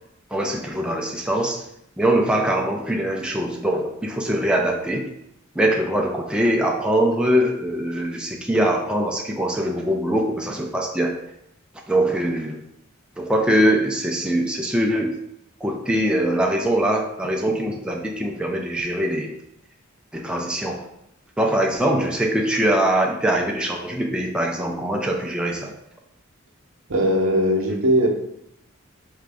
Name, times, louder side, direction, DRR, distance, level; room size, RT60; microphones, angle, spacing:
voice 1, 0.3-1.6 2.0-5.1 5.6-11.1 11.9-12.6 13.2-15.2 15.6-19.3 20.1-20.8 21.4-25.7, right 1 dB, 5° right, 0 dB, 0.3 m, -22 dB
voice 2, 26.9-28.1, equal, 70° right, 2 dB, 0.7 m, -19 dB
4.5 x 2.5 x 3.3 m, 0.77 s
head